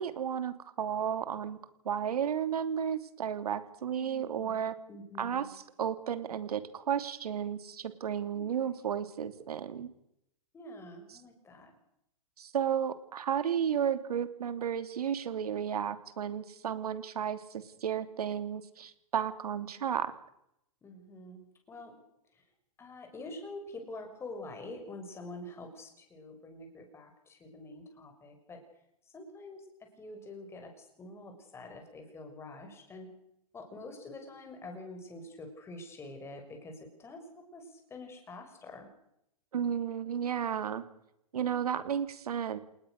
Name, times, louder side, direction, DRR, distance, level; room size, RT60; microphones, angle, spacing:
voice 1, 0.0-1.6 1.8-4.7 5.2-9.9 12.4-20.1 39.5-40.8 41.3-42.6, right 8 dB, 75° right, 11 dB, 3.0 m, -33 dB
voice 2, 4.0-4.5 4.9-5.5 8.3-8.8 10.5-11.7 20.8-22.0 22.8-28.6 29.1-33.1 33.5-38.9, left 2 dB, 15° left, 4 dB, 6.2 m, -46 dB
28.5 x 20.0 x 6.6 m, 0.77 s
hypercardioid pair, 140°, 20 cm